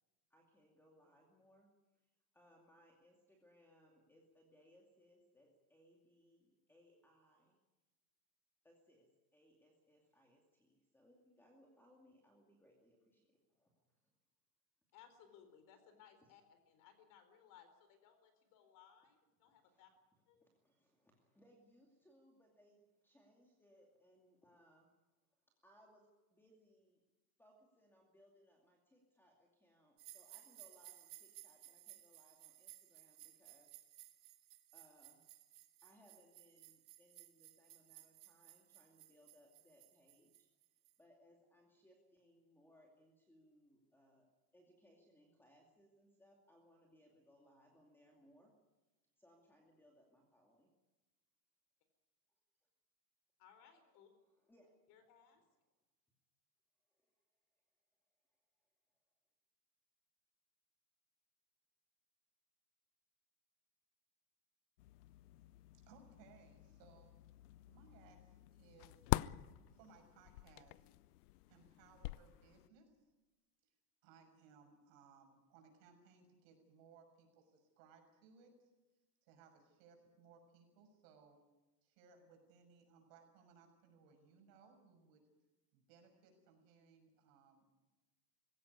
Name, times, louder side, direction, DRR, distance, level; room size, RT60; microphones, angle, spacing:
voice 1, 0.3-1.7 2.3-7.6 8.6-14.1 19.6-19.8 20.4-24.9 25.5-27.0 27.4-33.7 34.7-35.2 35.8-40.5 41.0-44.3 44.5-48.5 49.2-50.7 54.0-54.7 56.9-57.1, equal, 5° left, 0 dB, 2.5 m, -69 dB
voice 2, 14.9-19.9 20.3-20.5 53.4-54.1 54.9-55.4, left 8 dB, 45° left, 9 dB, 4.1 m, -64 dB
sound 1, 30.0-41.0, right 15 dB, 85° right, 2.7 m, -60 dB
sound 2, 64.8-72.7, left 18 dB, 80° left, 0.6 m, -45 dB
voice 3, 65.7-67.1 67.7-69.1 69.7-70.9 71.5-73.0 73.6-73.7 74.0-78.7 79.2-81.4 81.8-85.2 85.7-87.7, right 5 dB, 55° right, 4 dB, 6.4 m, -65 dB
20.5 x 17.0 x 9.6 m, 1.1 s
supercardioid pair, 155°, 45 cm